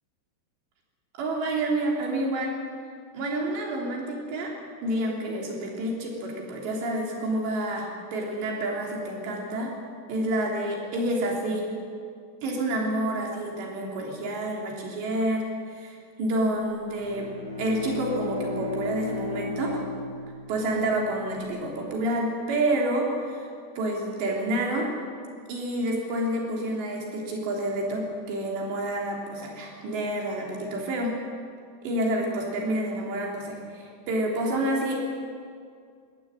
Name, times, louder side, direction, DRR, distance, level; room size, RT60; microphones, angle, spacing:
voice 1, 1.2-2.6 3.1-4.5 4.8-9.8 10.1-11.7 12.4-17.3 17.6-19.9 20.5-23.5 23.8-24.9 25.5-31.2 31.8-35.0, right 1 dB, 90° right, -1 dB, 5.6 m, -28 dB
Bowed string instrument, 16.8-21.5, left 3 dB, 45° left, 7.7 m, -35 dB
21.0 x 15.5 x 8.9 m, 2.2 s
omnidirectional pair, 4.9 m